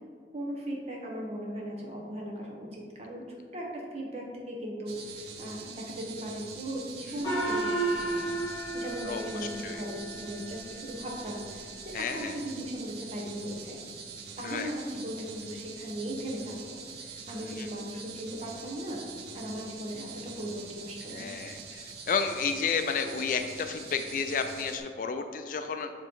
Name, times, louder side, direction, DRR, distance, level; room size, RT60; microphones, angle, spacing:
voice 1, 0.3-3.3 3.5-8.3 8.7-13.8 14.4-19.0 19.3-21.2, equal, 35° right, -2 dB, 1.1 m, -38 dB
sound 1, 4.9-24.8, right 5 dB, 65° right, 0.6 m, -44 dB
Gong, 7.2-10.2, right 2 dB, 20° left, 1.1 m, -32 dB
voice 2, 11.9-12.4 14.4-14.7 17.4-17.7 21.1-25.9, left 5 dB, 50° left, 7 dB, 0.3 m, -32 dB
7.7 x 3.2 x 4.7 m, 2.1 s
head